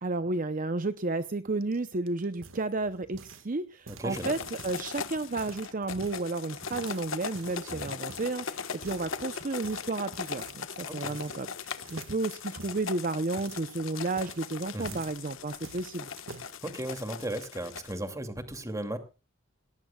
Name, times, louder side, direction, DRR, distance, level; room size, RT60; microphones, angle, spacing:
voice 1, 0.0-16.1, right 3 dB, 40° right, 11 dB, 0.7 m, -32 dB
sound 1, 1.6-3.5 3.8-4.8 5.2-6.3 6.7-7.7 8.1-8.3 8.8-9.2 9.6-9.9 10.4-10.6 10.9-11.5 11.8-15.2 15.6-16.5 17.2-17.7, right 3 dB, 75° right, 1.7 m, -48 dB
voice 2, 3.9-4.3 7.7-8.0 10.9-11.1 14.7-15.0 16.6-19.0, right 1 dB, 15° right, 7 dB, 2.6 m, -36 dB
sound 2, 4.1-18.0, left 6 dB, 80° left, 1.3 m, -40 dB
19.0 x 18.5 x 2.4 m, 0.32 s
head